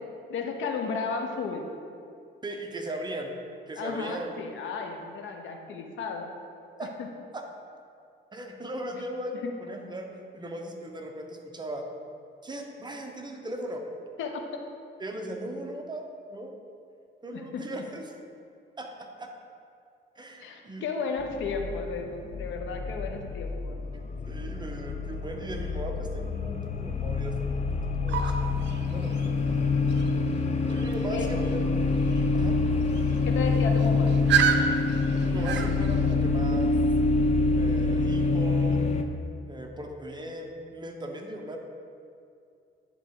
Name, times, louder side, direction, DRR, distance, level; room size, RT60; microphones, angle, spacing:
voice 1, 0.3-1.7 3.8-6.3 6.8-7.1 9.4-9.5 14.2-14.6 17.3-17.8 20.4-23.8 31.1-31.3 33.2-34.1, left 5 dB, 75° left, 4 dB, 0.8 m, -34 dB
voice 2, 2.4-3.3 3.7-4.4 6.8-6.9 7.3-7.4 8.3-11.9 12.4-13.8 15.0-16.5 17.2-18.0 18.8-19.3 20.1-20.9 23.4-23.6 24.2-28.5 28.8-29.5 30.6-31.6 32.3-32.6 35.2-36.7 37.5-38.9 39.5-41.6, right 1 dB, 20° right, 3 dB, 0.7 m, -38 dB
sound 1, 21.2-39.0, left 3 dB, 35° left, 0.5 m, -26 dB
sound 2, 28.1-36.1, right 7 dB, 65° right, 0.5 m, -32 dB
9.9 x 3.6 x 3.7 m, 2.5 s
cardioid pair, 90°, 20 cm